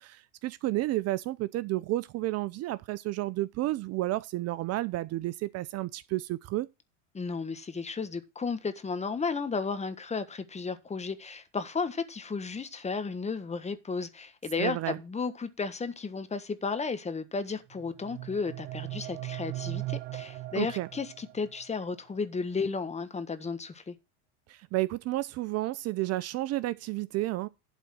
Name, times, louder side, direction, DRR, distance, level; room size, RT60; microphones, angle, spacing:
voice 1, 0.0-6.7 14.6-15.0 20.6-20.9 24.5-27.5, right 17 dB, 45° right, 0.6 m, -31 dB
voice 2, 7.1-23.9, left 4 dB, 20° left, 1.5 m, -33 dB
sound 1, 17.7-21.7, right 18 dB, 75° right, 0.9 m, -39 dB
11.5 x 4.1 x 7.5 m
supercardioid pair, 100°, 36 cm